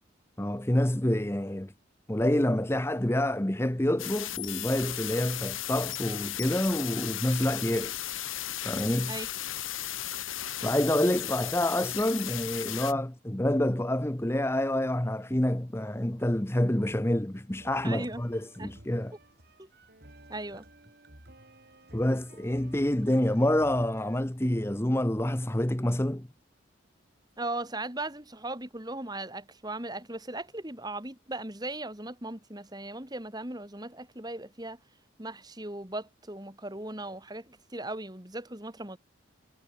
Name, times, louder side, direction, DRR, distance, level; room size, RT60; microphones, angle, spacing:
voice 1, 0.4-1.7 2.1-7.9 8.6-9.2 10.6-19.2 21.9-26.3, left 1 dB, 10° left, 0.8 m, -27 dB
sound 1, 4.0-12.9, left 12 dB, 85° left, 3.4 m, -35 dB
sound 2, 17.6-24.2, right 1 dB, 50° right, 4.8 m, -54 dB
voice 2, 17.8-18.2 18.6-18.7 19.6-19.7 20.3-20.6 27.4-34.8 35.2-39.0, right 2 dB, 20° right, 3.1 m, -38 dB
head